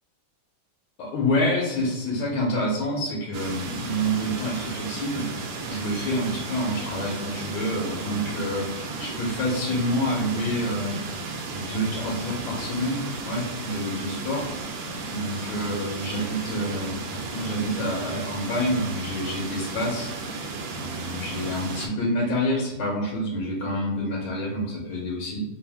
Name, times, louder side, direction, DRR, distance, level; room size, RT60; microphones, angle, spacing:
voice 1, 1.0-11.0 11.5-14.5 15.1-20.5 20.7-25.4, equal, 75° left, -3 dB, 1.6 m, -28 dB
sound 1, 3.3-21.9, right 3 dB, 75° right, 1.3 m, -34 dB
3.7 x 2.6 x 3.4 m, 0.98 s
omnidirectional pair, 2.2 m